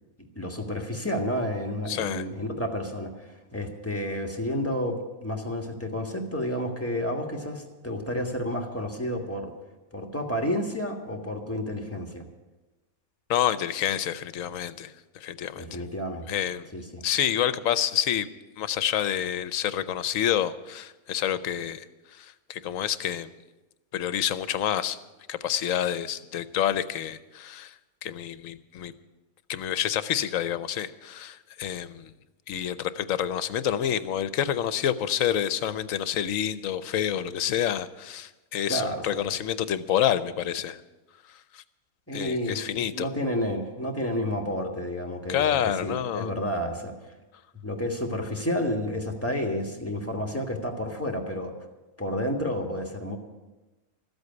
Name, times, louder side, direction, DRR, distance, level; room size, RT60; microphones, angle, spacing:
voice 1, 0.3-9.5 9.9-12.3 15.5-16.3 16.7-17.0 38.7-39.3 42.1-46.9 47.6-51.5 52.0-53.2, equal, 10° left, 3 dB, 1.6 m, -30 dB
voice 2, 1.9-2.2 13.3-15.8 16.3-16.7 17.0-18.3 18.6-21.9 22.1-23.3 23.9-25.0 25.3-27.7 28.0-28.9 29.5-32.1 32.5-40.8 41.5-41.6 42.1-43.1 45.3-46.3, left 10 dB, 70° left, 14 dB, 1.0 m, -28 dB
13.5 x 8.1 x 9.4 m, 1.1 s
omnidirectional pair, 1.5 m